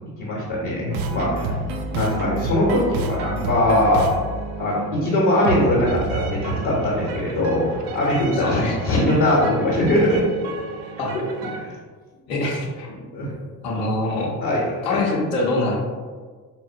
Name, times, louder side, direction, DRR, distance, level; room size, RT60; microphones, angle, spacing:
voice 1, 0.2-1.5 1.9-4.1 4.6-10.2 11.5-11.7 12.3-12.4 13.1-13.3 14.4-15.0, left 1 dB, 50° left, -5 dB, 0.9 m, -21 dB
sound 1, 0.9-11.6, right 3 dB, 65° right, 0.5 m, -30 dB
voice 2, 8.3-9.0 11.0-11.1 12.3-12.9 13.6-14.3 14.8-15.8, left 2 dB, 75° left, -2 dB, 0.7 m, -24 dB
3.9 x 2.0 x 2.6 m, 1.5 s
figure-of-eight pair, 45°, 49 cm